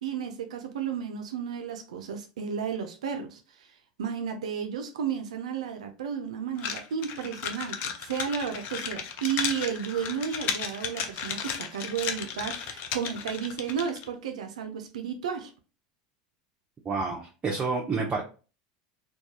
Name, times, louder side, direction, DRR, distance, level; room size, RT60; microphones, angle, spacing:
voice 1, 0.0-3.7 4.0-15.5, right 7 dB, 90° right, 0.4 m, -33 dB
sound 1, 6.6-14.1, left 7 dB, 55° left, 0.5 m, -34 dB
voice 2, 16.8-18.2, right 4 dB, 30° right, 0.6 m, -29 dB
2.3 x 2.2 x 2.7 m
hypercardioid pair, 95°, 3 cm